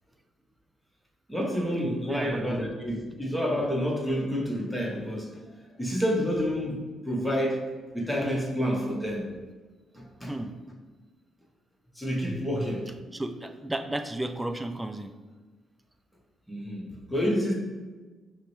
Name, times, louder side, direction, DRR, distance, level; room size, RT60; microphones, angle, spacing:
voice 1, 1.3-5.3 5.8-7.6 7.9-9.3 9.9-10.4 12.0-12.9 16.5-17.5, equal, 10° left, -2 dB, 1.1 m, -29 dB
voice 2, 1.8-2.7 5.0-5.1 10.3-10.6 13.1-15.1, right 1 dB, 15° right, 7 dB, 0.4 m, -34 dB
5.7 x 2.1 x 3.1 m, 1.3 s
hypercardioid pair, 50°, 0 cm